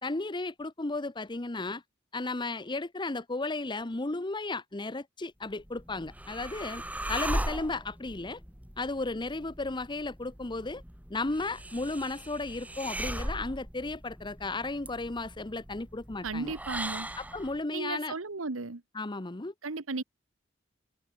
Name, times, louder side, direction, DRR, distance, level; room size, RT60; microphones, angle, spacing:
voice 1, 0.0-1.8 2.1-6.8 7.1-8.4 8.8-10.8 11.1-16.5 17.2-18.1 18.9-19.5, left 2 dB, 25° left, 0.8 m, -34 dB
sound 1, 5.5-17.6, right 1 dB, 10° right, 3.5 m, -39 dB
voice 2, 16.2-17.1 17.7-18.8 19.6-20.0, right 3 dB, 90° right, 1.3 m, -35 dB
head